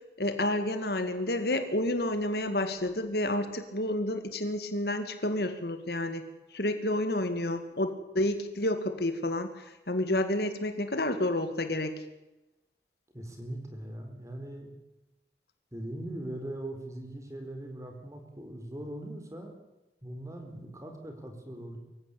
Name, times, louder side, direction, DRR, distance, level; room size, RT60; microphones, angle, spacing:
voice 1, 0.2-6.2 6.5-11.9, left 1 dB, 60° left, 9 dB, 2.1 m, -30 dB
voice 2, 13.1-14.7 15.7-19.5 20.0-21.8, right 1 dB, 20° right, 4 dB, 4.2 m, -40 dB
24.5 x 15.5 x 8.7 m, 0.98 s
head